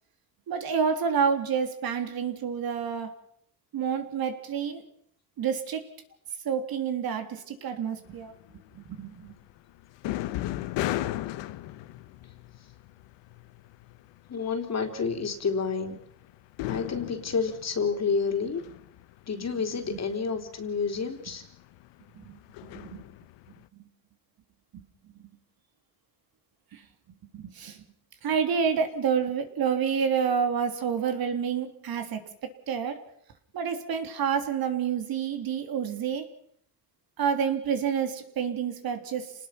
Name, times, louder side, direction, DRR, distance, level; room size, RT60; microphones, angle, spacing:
voice 1, 0.5-3.2 3.7-4.8 5.4-5.9 6.4-8.3 8.7-9.4 10.1-10.2 10.5-10.6 19.9-20.0 22.1-23.0 23.7-23.8 24.7-24.8 25.2-25.3 26.7-26.8 27.3-27.8 28.2-32.2 32.7-33.0 33.5-36.3 37.2-39.3, right 7 dB, 55° right, 7 dB, 3.2 m, -29 dB
sound 1, 8.1-14.3 14.7-23.7, left 15 dB, 75° left, 1.3 m, -37 dB
voice 2, 14.3-16.0 16.7-18.6 19.3-21.4, left 5 dB, 35° left, 5 dB, 3.8 m, -29 dB
28.5 x 19.5 x 6.0 m, 0.67 s
cardioid pair, 115°, 43 cm